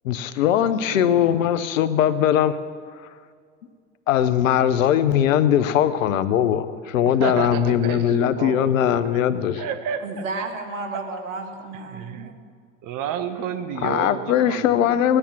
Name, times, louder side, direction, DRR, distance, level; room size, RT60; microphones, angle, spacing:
voice 1, 0.0-2.6 4.1-9.6 13.8-15.2, left 10 dB, 85° left, 13 dB, 0.9 m, -20 dB
voice 2, 0.6-1.5 7.2-8.8 9.0-9.2 9.5-10.2 11.7-12.3 12.8-15.0, right 8 dB, 55° right, 11 dB, 1.3 m, -31 dB
voice 3, 10.0-12.4, right 3 dB, 90° right, 5 dB, 1.8 m, -32 dB
18.0 x 10.0 x 6.0 m, 2.1 s
hypercardioid pair, 80°, 38 cm